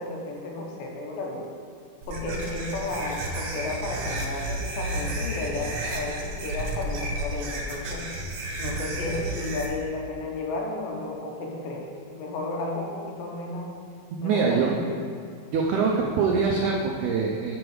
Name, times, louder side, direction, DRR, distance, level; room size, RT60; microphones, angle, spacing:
voice 1, 0.0-1.5 2.1-8.1 8.6-13.7 14.2-15.0 15.9-16.1, left 2 dB, 75° left, 0 dB, 2.7 m, -33 dB
sound 1, 2.0-9.7, right 1 dB, 65° right, 1.8 m, -32 dB
voice 2, 14.1-14.7 15.5-17.6, right 5 dB, 85° right, 0 dB, 1.7 m, -24 dB
7.0 x 6.4 x 4.7 m, 2.1 s
omnidirectional pair, 4.2 m